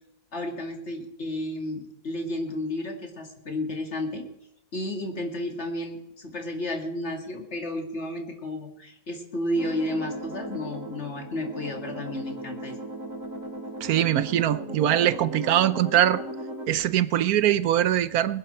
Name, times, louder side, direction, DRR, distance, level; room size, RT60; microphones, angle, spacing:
voice 1, 0.3-4.2 4.7-12.8, left 1 dB, 40° left, 4 dB, 2.6 m, -32 dB
sound 1, 9.6-16.7, right 1 dB, 55° right, 2.8 m, -37 dB
voice 2, 13.8-16.2 16.7-18.4, right 11 dB, 70° right, 16 dB, 1.1 m, -22 dB
20.0 x 11.5 x 4.4 m, 0.85 s
omnidirectional pair, 1.7 m